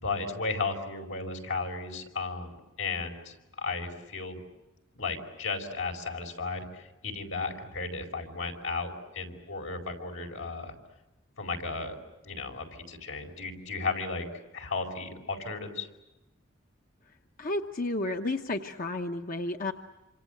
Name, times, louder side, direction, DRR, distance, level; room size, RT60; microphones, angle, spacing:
voice 1, 0.0-4.4 5.0-10.7 11.4-12.0 12.2-14.3 14.5-15.9, left 4 dB, 80° left, 3 dB, 5.1 m, -34 dB
voice 2, 17.4-19.7, left 2 dB, 45° left, 5 dB, 1.0 m, -32 dB
27.5 x 27.0 x 8.0 m, 1.0 s
head